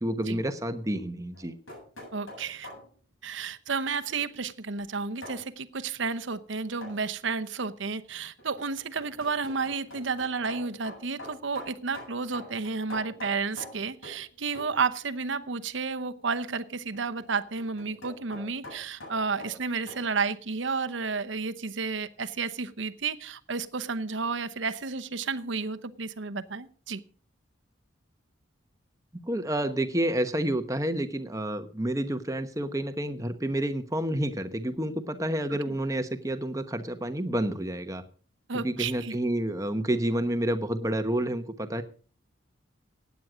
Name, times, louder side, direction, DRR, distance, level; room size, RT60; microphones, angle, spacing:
voice 1, 0.0-1.5 29.2-38.0 38.6-41.8, right 1 dB, 15° right, 9 dB, 1.0 m, -29 dB
sound 1, 1.3-2.9 5.2-5.4 6.8-7.1 8.4-14.3 14.6-14.8 16.9-20.1, left 1 dB, 80° left, 7.9 m, -45 dB
voice 2, 2.1-2.7 3.2-27.0 35.7-35.8 38.5-39.1, right 4 dB, 70° right, 11 dB, 0.9 m, -32 dB
16.0 x 9.5 x 5.0 m, 0.41 s
head